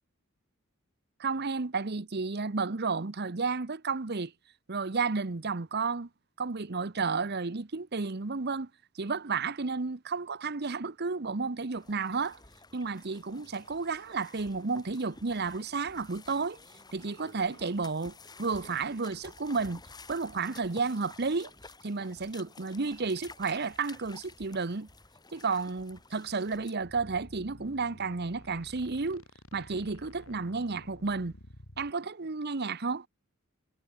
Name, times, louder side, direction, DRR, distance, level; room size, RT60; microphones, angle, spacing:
voice 1, 1.2-4.3 4.7-6.1 6.4-8.7 8.9-12.4 12.7-16.6 16.9-19.8 20.1-21.5 21.8-24.9 25.3-29.2 29.5-31.3 31.8-33.1, right 4 dB, 50° right, 0.9 m, -32 dB
sound 1, 11.7-26.7, left 3 dB, 20° left, 3.9 m, -52 dB
sound 2, 26.8-31.9, left 1 dB, 70° left, 6.3 m, -51 dB
head